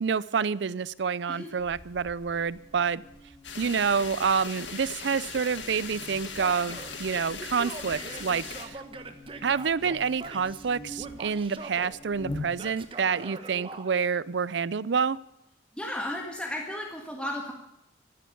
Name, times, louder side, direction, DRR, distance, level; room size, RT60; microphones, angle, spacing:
voice 1, 0.0-3.0 3.6-8.8 9.4-15.2, right 6 dB, 75° right, 20 dB, 0.5 m, -28 dB
Buzz, 1.6-13.0, left 1 dB, 25° left, 2.4 m, -46 dB
sound 1, 3.4-8.6, left 6 dB, 85° left, 2.0 m, -39 dB
Male speech man speaking / Yell, 6.4-7.0 7.4-10.7 11.0-11.9 12.6-13.9, right 2 dB, 30° right, 1.1 m, -42 dB
voice 2, 15.8-17.5, left 1 dB, 5° left, 0 dB, 1.6 m, -34 dB
14.5 x 10.0 x 8.5 m, 0.84 s
head